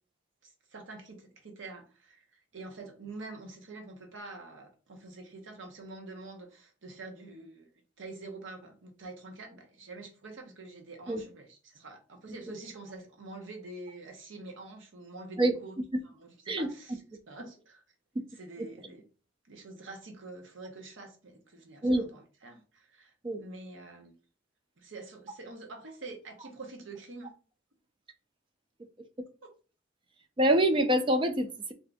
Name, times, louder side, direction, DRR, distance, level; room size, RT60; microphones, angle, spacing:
voice 1, 0.4-7.7 8.0-15.7 16.0-17.8 18.3-19.0 19.5-23.1 23.4-24.1 24.8-27.3 29.4-29.5, right 2 dB, 70° right, 3 dB, 0.9 m, -46 dB
voice 2, 30.4-31.7, right 1 dB, 25° right, 7 dB, 0.4 m, -25 dB
2.7 x 2.5 x 3.4 m, 0.34 s
head